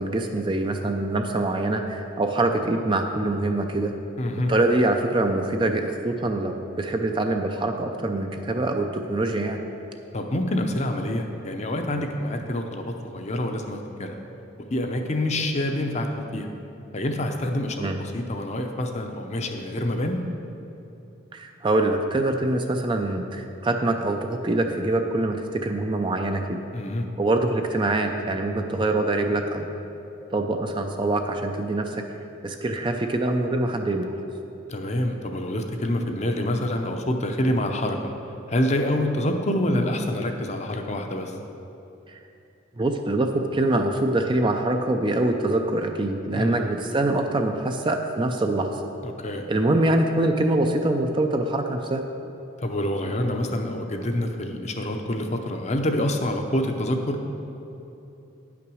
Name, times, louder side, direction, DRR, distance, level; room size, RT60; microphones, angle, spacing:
voice 1, 0.0-3.9 4.5-9.6 17.8-18.0 21.3-26.7 27.2-29.7 30.3-32.0 32.4-34.2 42.1-42.2 42.8-48.8 49.5-52.0, right 2 dB, 25° right, 4 dB, 0.4 m, -24 dB
voice 2, 4.2-4.5 10.1-14.2 14.7-16.5 16.9-20.2 26.7-27.1 34.7-38.1 38.5-41.3 46.3-46.7 49.0-49.4 52.6-57.2, left 1 dB, 35° left, 4 dB, 0.7 m, -27 dB
9.6 x 5.9 x 6.2 m, 2.9 s
head